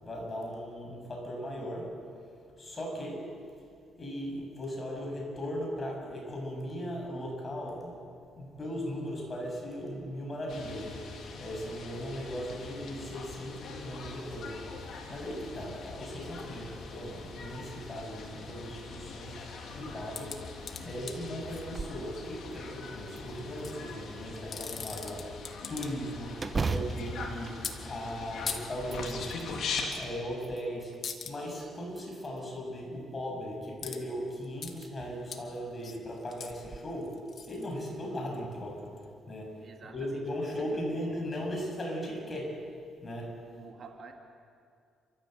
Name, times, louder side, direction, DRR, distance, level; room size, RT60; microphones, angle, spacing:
voice 1, 0.0-2.1 2.6-3.5 4.0-8.0 8.4-20.5 20.8-43.6, equal, 30° left, 0 dB, 7.5 m, -38 dB
sound 1, 10.5-29.9, left 4 dB, 65° left, 3.4 m, -42 dB
sound 2, 20.1-21.6 23.4-23.7 24.3-26.1 26.4-27.0 27.6-27.8 28.5-28.6 29.9-30.1 30.4-30.6 31.0-31.3 33.8-34.0 34.3-34.7 35.3-35.4 35.8-38.4 39.0-39.1, left 6 dB, 50° left, 1.9 m, -40 dB
sound 3, 21.5-22.1 22.5-22.6 23.2-24.0 26.4-28.4 28.8-29.5 30.1-31.0 31.9-32.6 34.0-34.1 34.7-34.9 35.3-35.4 36.5-36.8, right 4 dB, 30° right, 1.0 m, -37 dB
voice 2, 39.6-41.6 43.6-44.1, right 4 dB, 50° right, 3 dB, 2.5 m, -50 dB
30.0 x 14.0 x 8.1 m, 2.3 s
cardioid pair, 90°, 0 cm